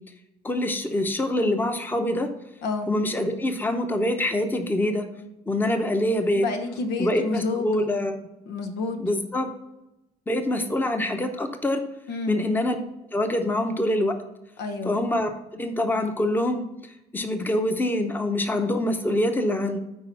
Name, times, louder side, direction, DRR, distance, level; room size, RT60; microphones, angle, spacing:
voice 1, 0.4-2.3 2.9-5.1 5.5-6.4 7.0-8.2 9.0-9.5 10.3-11.8 12.3-12.8 13.1-14.2 14.8-16.7 17.1-19.8, left 1 dB, 10° left, 6 dB, 0.9 m, -25 dB
voice 2, 2.6-2.9 6.3-7.9 8.5-9.0 12.1-12.4 14.6-14.9, left 3 dB, 80° left, 6 dB, 1.2 m, -29 dB
8.8 x 4.6 x 5.5 m, 0.90 s
cardioid pair, 110°, 17 cm